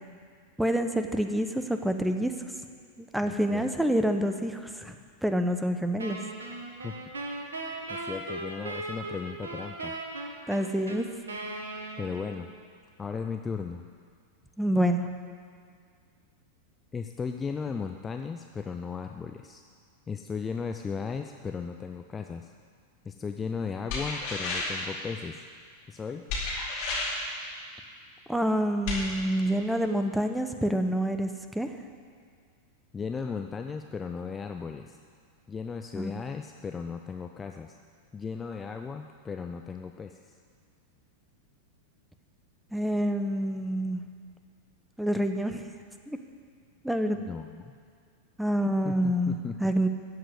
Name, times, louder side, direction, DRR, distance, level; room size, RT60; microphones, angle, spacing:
voice 1, 0.6-2.3 3.0-5.0 5.2-6.2 10.5-11.0 14.6-15.1 28.3-31.7 35.9-36.1 42.7-44.0 45.0-45.7 46.1-46.2 46.8-47.3 48.4-49.9, equal, 5° right, 7 dB, 1.0 m, -27 dB
voice 2, 3.2-3.6 6.8-6.9 7.9-9.9 12.0-12.5 13.0-13.8 16.9-19.6 20.1-22.5 23.0-25.4 25.9-26.2 32.9-35.0 35.5-37.8 38.1-40.3 47.3-47.7 48.8-49.7, left 5 dB, 15° left, 5 dB, 0.6 m, -36 dB
Wind instrument woodwind instrument, 6.0-12.6, right 2 dB, 70° right, 1.7 m, -38 dB
sound 1, 23.9-24.9 26.3-27.3 28.9-29.0, left 2 dB, 45° left, 4.5 m, -31 dB
15.0 x 7.7 x 8.3 m, 2.1 s
figure-of-eight pair, 90°, 0 cm